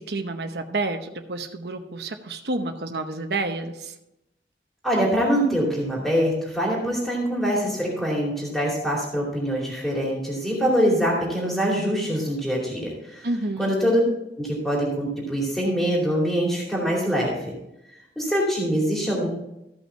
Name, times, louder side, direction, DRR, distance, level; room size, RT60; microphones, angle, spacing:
voice 1, 0.0-3.9 13.2-13.7, right 2 dB, 65° right, 5 dB, 0.9 m, -29 dB
voice 2, 4.8-13.3 13.6-14.0 14.4-17.5 18.2-19.3, equal, ahead, -4 dB, 2.5 m, -24 dB
14.5 x 5.6 x 4.5 m, 0.88 s
head